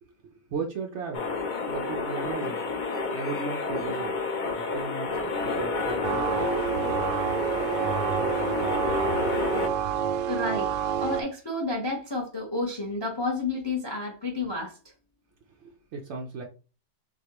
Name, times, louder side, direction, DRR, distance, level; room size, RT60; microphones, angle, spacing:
voice 1, 0.0-1.3 1.7-2.6 3.1-4.2 4.5-6.6 15.5-16.4, right 4 dB, 65° right, 0.7 m, -36 dB
sound 1, 1.1-9.7, left 4 dB, 65° left, 0.4 m, -30 dB
sound 2, 6.0-11.2, right 9 dB, 90° right, 1.2 m, -28 dB
voice 2, 10.3-10.7 11.0-14.8, left 2 dB, 25° left, 0.6 m, -30 dB
6.4 x 2.3 x 2.9 m
omnidirectional pair, 1.8 m